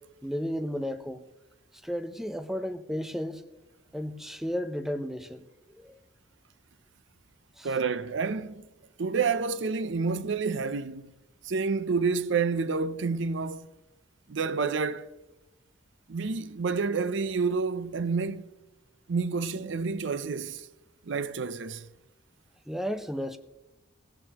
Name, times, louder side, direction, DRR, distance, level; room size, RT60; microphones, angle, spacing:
voice 1, 0.2-1.2 1.8-3.4 3.9-6.0 7.6-7.8 22.7-23.4, equal, ahead, 0.6 m, -33 dB
voice 2, 7.6-8.6 9.0-11.1 11.4-13.7 14.3-15.1 16.1-18.5 19.1-20.7 21.1-21.9, right 4 dB, 65° right, 0.6 m, -29 dB
18.0 x 13.5 x 2.9 m
head